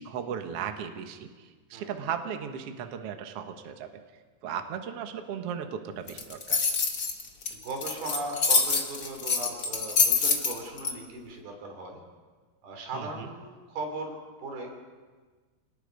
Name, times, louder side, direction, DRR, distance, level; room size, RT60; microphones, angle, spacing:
voice 1, 0.0-3.9 4.4-6.7 12.9-13.3, right 8 dB, 60° right, 6 dB, 1.6 m, -36 dB
sound 1, 6.1-10.9, left 4 dB, 45° left, 1.2 m, -25 dB
voice 2, 7.5-12.0 12.6-14.8, right 2 dB, 85° right, 2 dB, 5.2 m, -38 dB
27.0 x 19.5 x 5.3 m, 1.4 s
omnidirectional pair, 4.3 m